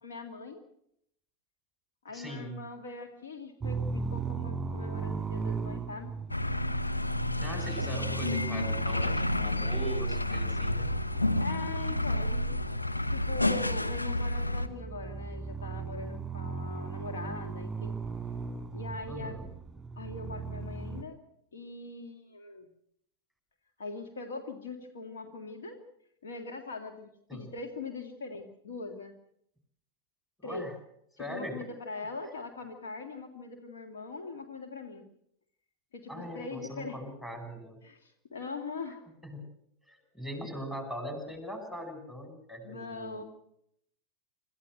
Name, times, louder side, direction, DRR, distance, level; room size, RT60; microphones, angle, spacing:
voice 1, 0.0-0.6 2.0-6.1 11.2-12.6 13.1-17.9 18.7-19.4 20.0-21.2 21.5-22.7 23.8-25.8 26.2-29.1 30.4-30.7 31.3-35.1 35.9-37.0 37.8-39.0 42.6-43.2, left 3 dB, 65° left, 5 dB, 2.2 m, -41 dB
voice 2, 2.1-2.6 7.4-10.9 19.1-19.4 27.3-27.5 30.4-30.7 31.2-31.6 36.1-37.8 39.2-39.5 39.9-43.3, equal, 5° left, 5 dB, 5.7 m, -40 dB
sound 1, 3.6-21.0, right 4 dB, 10° right, 2.0 m, -38 dB
sound 2, 6.3-14.7, left 1 dB, 85° left, 1.1 m, -30 dB
26.0 x 14.5 x 7.8 m, 0.74 s
figure-of-eight pair, 90°, 0 cm